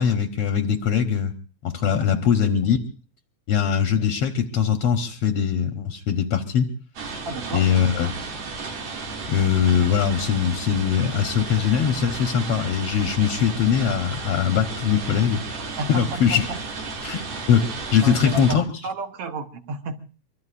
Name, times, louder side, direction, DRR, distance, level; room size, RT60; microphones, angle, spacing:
voice 1, 0.0-1.3 1.6-2.8 3.5-6.7 7.5-8.1 9.3-15.4 15.9-16.4 17.0-17.2 17.5-18.6, left 8 dB, 70° left, 6 dB, 1.5 m, -21 dB
sound 1, 7.0-18.6, right 3 dB, 90° right, 4.1 m, -33 dB
voice 2, 7.2-8.1 15.8-16.6 18.0-20.0, right 3 dB, 60° right, 7 dB, 1.7 m, -32 dB
25.5 x 23.0 x 2.5 m, 0.38 s
omnidirectional pair, 3.6 m